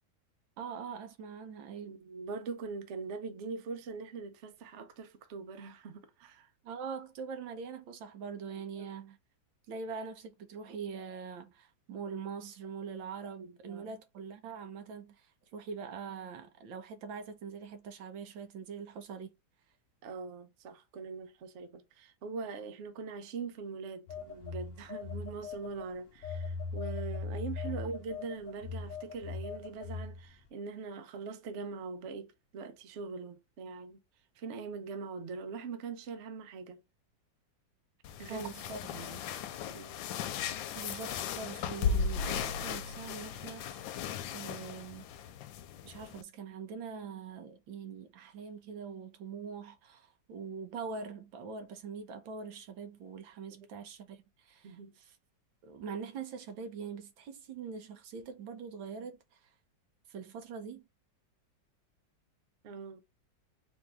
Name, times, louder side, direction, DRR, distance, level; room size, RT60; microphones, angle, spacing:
voice 1, 0.6-2.0 6.6-9.2 9.7-19.3 38.3-38.8 40.7-44.1 44.3-45.1 45.8-55.2 55.6-59.5 60.1-60.9, right 5 dB, 85° right, 1.7 m, -43 dB
voice 2, 1.8-6.5 8.8-8.9 13.4-13.9 20.0-34.0 34.4-36.8 38.2-38.5 38.9-39.2 39.6-40.0 54.6-54.9 62.6-63.0, right 4 dB, 55° right, 0.8 m, -42 dB
Telephone, 24.1-25.9 26.2-30.3, left 4 dB, 60° left, 0.8 m, -39 dB
sound 1, 38.0-46.2, left 6 dB, 85° left, 1.4 m, -36 dB
4.5 x 2.7 x 3.4 m
omnidirectional pair, 2.1 m